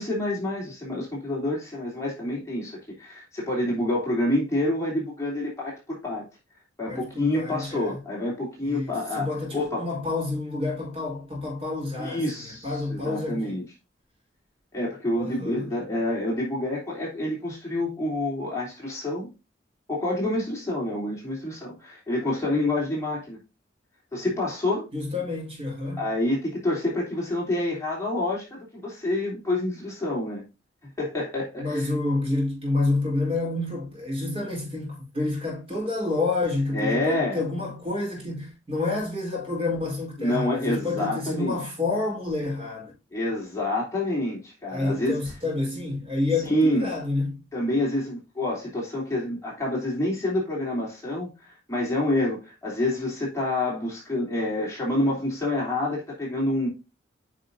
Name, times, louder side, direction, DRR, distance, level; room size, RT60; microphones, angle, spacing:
voice 1, 0.0-6.2 6.8-9.9 12.0-13.6 14.7-19.3 19.9-23.4 24.1-24.9 26.0-30.4 31.0-31.8 36.7-37.4 40.2-41.6 43.1-45.2 46.5-46.9 47.5-56.7, left 1 dB, 15° left, 3.3 m, -27 dB
voice 2, 6.9-8.0 8.7-13.6 15.2-15.7 24.9-26.1 31.6-42.9 44.7-47.4, left 2 dB, 30° right, 4.4 m, -29 dB
9.3 x 5.9 x 2.7 m
head